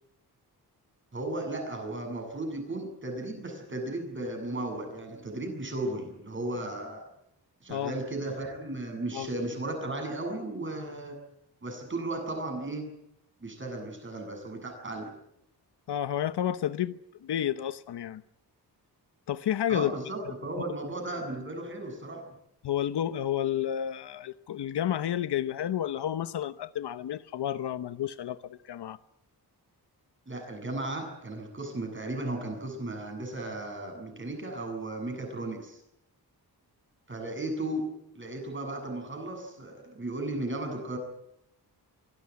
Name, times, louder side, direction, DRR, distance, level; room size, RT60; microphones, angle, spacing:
voice 1, 1.1-7.1 7.6-11.2 11.6-12.9 13.4-15.1 19.7-22.3 30.3-35.8 37.1-41.0, right 2 dB, 30° right, 7.5 m, -35 dB
voice 2, 15.9-18.2 19.3-19.9 22.6-29.0, left 10 dB, 85° left, 0.9 m, -31 dB
24.0 x 16.5 x 9.5 m
wide cardioid pair, 165°, 39 cm